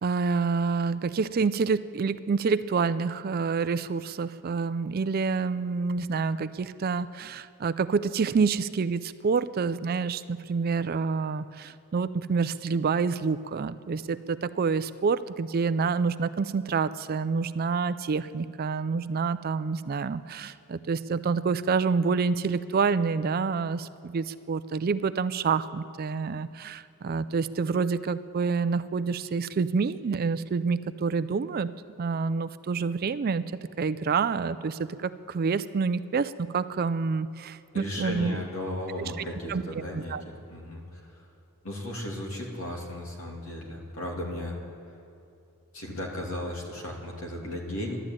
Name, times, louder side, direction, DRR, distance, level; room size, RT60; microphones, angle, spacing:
voice 1, 0.0-31.7 32.0-33.4 33.8-38.4 39.2-39.6 39.9-40.2, right 5 dB, 45° right, 14 dB, 0.4 m, -28 dB
voice 2, 37.7-40.2 40.5-41.2 41.6-44.6 45.7-48.0, left 1 dB, 70° left, -1 dB, 2.7 m, -35 dB
12.0 x 12.0 x 8.9 m, 2.7 s
head